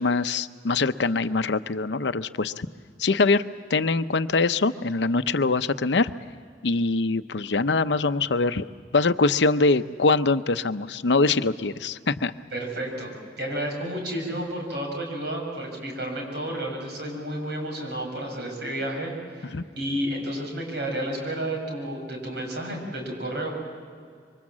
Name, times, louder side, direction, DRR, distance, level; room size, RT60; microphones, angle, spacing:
voice 1, 0.0-2.7 3.0-3.4 3.7-6.1 6.6-8.6 8.9-12.3 19.5-19.6, left 3 dB, 75° left, 11 dB, 0.7 m, -23 dB
voice 2, 12.5-13.1 13.4-23.5, right 1 dB, 70° right, 1 dB, 6.9 m, -31 dB
27.0 x 24.5 x 7.4 m, 2.1 s
head